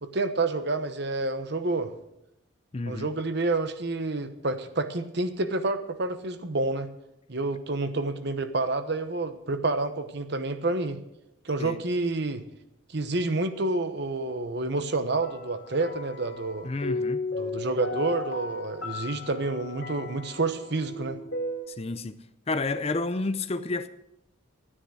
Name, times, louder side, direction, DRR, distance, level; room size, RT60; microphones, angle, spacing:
voice 1, 0.0-1.9 2.9-6.9 7.3-11.0 11.4-12.4 12.9-16.7 17.4-21.2, right 2 dB, 55° right, 1.0 m, -29 dB
voice 2, 2.7-3.1 11.6-11.8 16.6-17.2 21.7-22.2 22.5-23.9, left 3 dB, 30° left, 0.6 m, -30 dB
sound 1, 15.2-21.6, left 3 dB, 55° left, 3.3 m, -35 dB
12.5 x 10.0 x 6.3 m
head